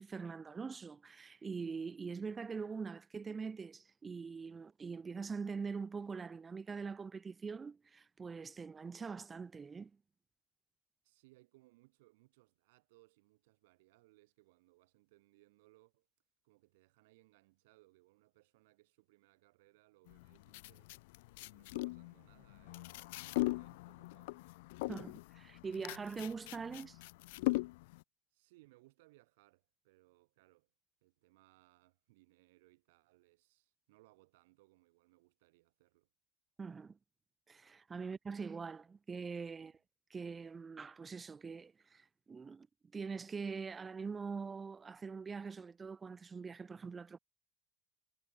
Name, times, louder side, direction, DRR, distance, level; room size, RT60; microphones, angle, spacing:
voice 1, 0.0-9.9 24.9-27.0 36.6-37.0 37.5-39.7 40.1-42.7 42.9-47.2, right 5 dB, 20° right, 0.6 m, -43 dB
voice 2, 11.0-16.1 16.4-20.9 21.4-24.5 28.3-30.7 31.0-36.1 39.6-39.8, right 21 dB, 80° right, 8.0 m, -68 dB
sound 1, 20.1-28.0, left 22 dB, 80° left, 0.4 m, -40 dB
supercardioid pair, 105°, 0 cm